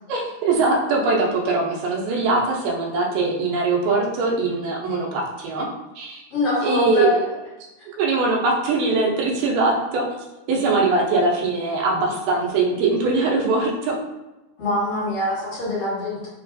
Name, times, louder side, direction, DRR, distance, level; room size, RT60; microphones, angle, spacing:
voice 1, 0.1-5.7 6.0-6.2 6.6-7.2 8.0-10.1 10.5-14.0, right 3 dB, 90° right, -1 dB, 2.4 m, -21 dB
voice 2, 6.3-7.2 14.6-16.3, left 1 dB, 55° left, -10 dB, 2.1 m, -24 dB
5.2 x 2.3 x 2.5 m, 1.0 s
omnidirectional pair, 3.8 m